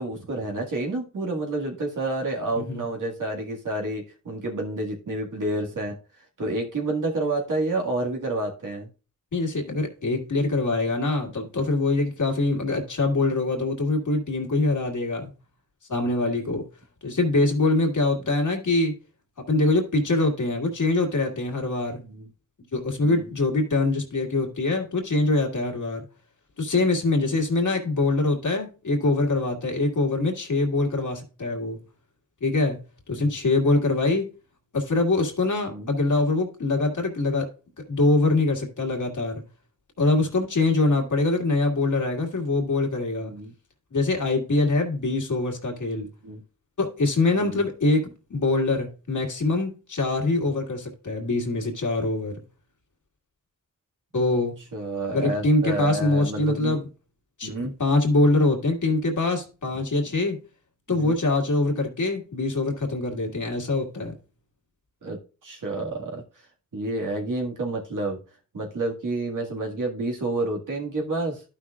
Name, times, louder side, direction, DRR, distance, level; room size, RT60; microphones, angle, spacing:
voice 1, 0.0-6.0 6.4-8.9 22.0-22.3 23.0-23.3 33.1-33.3 35.7-35.9 43.1-43.5 46.2-46.4 47.4-47.6 50.4-50.6 54.7-56.8 57.4-57.7 60.9-61.2 65.0-66.2 66.7-68.2 68.5-71.4, right 2 dB, 75° right, 1.9 m, -29 dB
voice 2, 2.6-2.9 9.3-15.3 15.9-16.6 17.0-18.9 19.5-22.0 22.7-26.0 26.6-31.8 32.4-32.8 33.1-34.3 34.7-37.5 37.9-39.4 40.0-43.3 43.9-46.1 46.8-52.4 54.1-54.6 55.1-56.8 57.4-60.4 60.9-64.1, left 2 dB, 70° left, 2.0 m, -24 dB
12.0 x 5.7 x 2.4 m
cardioid pair, 45°, 31 cm